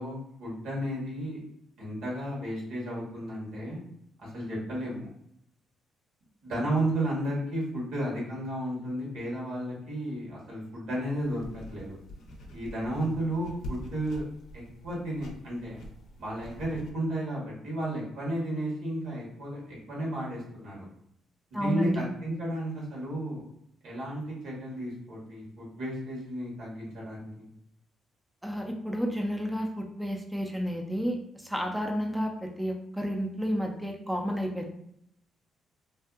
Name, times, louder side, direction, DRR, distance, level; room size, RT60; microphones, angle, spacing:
voice 1, 0.0-1.4 1.8-3.8 4.2-5.1 6.4-12.0 12.5-14.2 14.5-15.8 16.2-20.9 21.6-23.4 23.8-27.5, right 1 dB, 85° right, -5 dB, 1.2 m, -33 dB
sound 1, 11.2-16.9, equal, 80° left, 0.5 m, -45 dB
voice 2, 21.5-22.0 28.4-34.7, equal, 5° right, 2 dB, 0.4 m, -31 dB
2.6 x 2.4 x 2.3 m, 0.73 s
cardioid pair, 90°, 0 cm